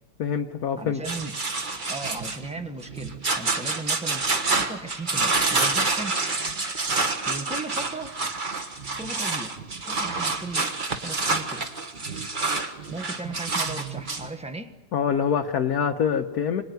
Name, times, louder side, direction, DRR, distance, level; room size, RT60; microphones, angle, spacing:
voice 1, 0.2-1.0 14.9-16.6, left 7 dB, 55° left, 4 dB, 1.3 m, -25 dB
voice 2, 0.8-1.4 1.9-6.2 7.3-8.1 8.8-9.6 9.9-10.7 11.0-11.6 12.9-14.7, right 3 dB, 5° right, 6 dB, 0.9 m, -36 dB
sound 1, 1.0-14.3, right 3 dB, 25° right, 1.3 m, -28 dB
25.5 x 19.5 x 9.4 m, 1.2 s
omnidirectional pair, 2.4 m